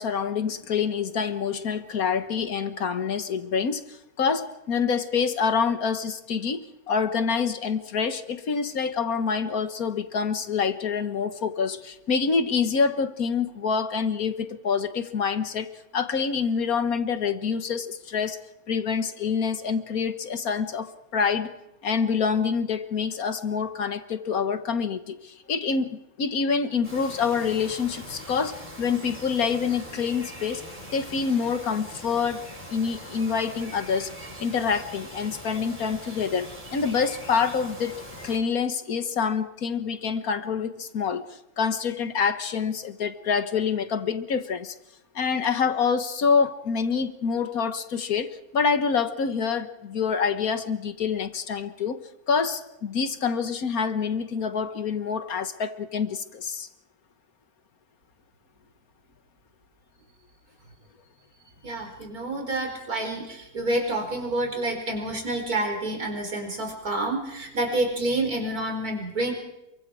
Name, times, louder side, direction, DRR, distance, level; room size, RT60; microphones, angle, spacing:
voice 1, 0.0-18.4 18.7-21.5 21.8-30.6 30.9-32.4 32.7-34.1 34.4-41.3 41.6-44.7 45.2-52.0 52.3-56.7, left 6 dB, 70° left, 9 dB, 1.9 m, -26 dB
Bird vocalization bird call bird song, 26.8-38.4, equal, 30° right, 5.3 m, -42 dB
voice 2, 61.6-69.3, right 2 dB, 75° right, 2 dB, 5.0 m, -28 dB
28.0 x 23.5 x 4.8 m, 0.91 s
omnidirectional pair, 1.6 m